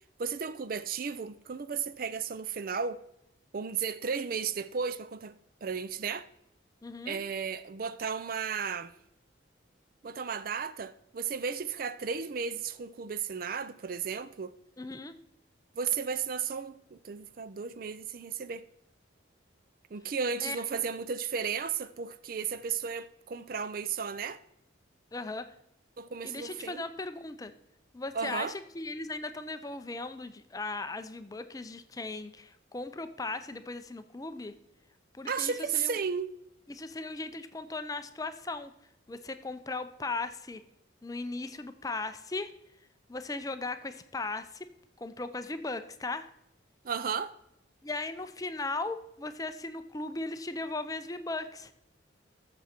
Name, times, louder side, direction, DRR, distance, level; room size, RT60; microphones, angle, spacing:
voice 1, 0.2-3.0 3.5-5.3 5.6-6.3 7.1-8.9 10.0-14.5 15.7-18.6 19.9-24.4 26.0-26.8 28.1-28.6 35.3-36.3 46.8-47.3, right 6 dB, 45° right, 0.4 m, -34 dB
voice 2, 6.8-7.2 14.8-15.1 20.4-20.6 25.1-25.5 26.2-27.5 27.9-34.5 35.1-36.0 36.7-38.7 39.1-40.6 41.0-42.5 43.1-44.7 45.0-46.3 47.8-51.7, left 3 dB, 20° left, 0.5 m, -37 dB
14.0 x 7.0 x 4.4 m
head